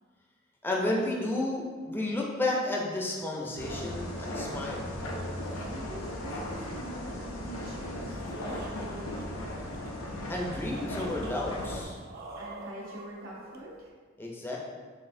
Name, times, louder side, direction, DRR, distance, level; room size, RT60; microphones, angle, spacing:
voice 1, 0.6-4.9 10.3-12.0 14.2-14.6, left 2 dB, 10° left, -2 dB, 0.5 m, -32 dB
sound 1, 3.6-11.8, left 1 dB, 70° left, 0.6 m, -37 dB
sound 2, 3.7-13.9, right 2 dB, 50° right, 0.4 m, -49 dB
voice 2, 5.7-9.5 12.4-13.9, right 1 dB, 70° right, -4 dB, 0.9 m, -44 dB
4.0 x 3.5 x 2.6 m, 1.5 s
head